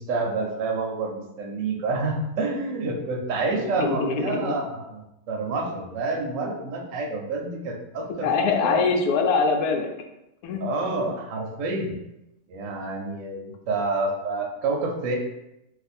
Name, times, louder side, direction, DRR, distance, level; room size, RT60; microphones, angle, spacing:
voice 1, 0.0-8.8 10.6-12.0 12.5-15.1, right 3 dB, 65° right, 0 dB, 0.9 m, -28 dB
voice 2, 3.8-4.6 8.2-9.9 10.4-10.6, left 4 dB, 80° left, 4 dB, 1.1 m, -23 dB
2.5 x 2.5 x 4.1 m, 0.89 s
omnidirectional pair, 1.6 m